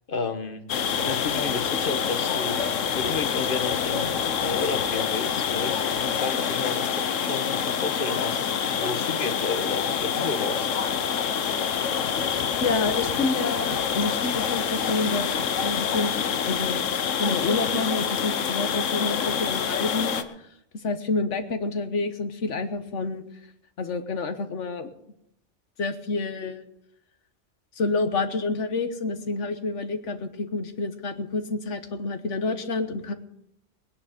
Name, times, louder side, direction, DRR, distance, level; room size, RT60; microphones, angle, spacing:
voice 1, 0.1-0.7 0.9-2.6 2.9-4.2 4.4-10.8, left 4 dB, 45° left, 8 dB, 1.3 m, -32 dB
sound 1, 0.7-20.2, left 7 dB, 90° left, 1.3 m, -26 dB
voice 2, 12.6-16.8 17.2-20.5 20.8-23.2 23.8-24.9 25.8-26.6 27.7-33.1, left 3 dB, 75° left, 8 dB, 1.5 m, -28 dB
20.5 x 10.5 x 5.1 m, 0.79 s
omnidirectional pair, 1.3 m